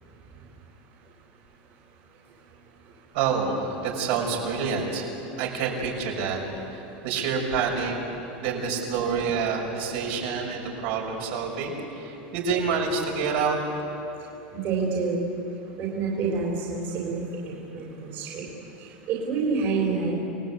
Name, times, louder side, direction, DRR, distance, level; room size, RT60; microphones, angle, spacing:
voice 1, 3.1-5.1 5.4-6.4 6.7-8.0 8.3-13.6, right 5 dB, 70° right, -1 dB, 6.2 m, -27 dB
voice 2, 14.5-15.2 15.8-18.4 19.1-20.1, right 4 dB, 45° right, -2 dB, 4.2 m, -28 dB
28.5 x 19.0 x 8.4 m, 3.0 s
supercardioid pair, 150°, 5 cm